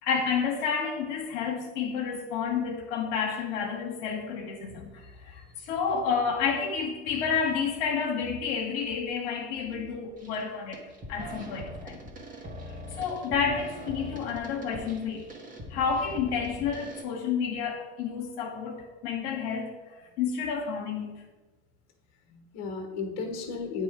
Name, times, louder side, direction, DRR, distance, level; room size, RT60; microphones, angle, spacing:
voice 1, 0.0-12.0 13.0-15.3 15.7-21.2, left 6 dB, 75° left, 1.1 m, -30 dB
sound 1, 10.2-10.4 10.7-17.0, left 1 dB, 25° right, 1.4 m, -41 dB
voice 2, 22.3-23.8, left 4 dB, 50° left, 1.3 m, -35 dB
8.7 x 2.9 x 4.8 m
supercardioid pair, 110°, 34 cm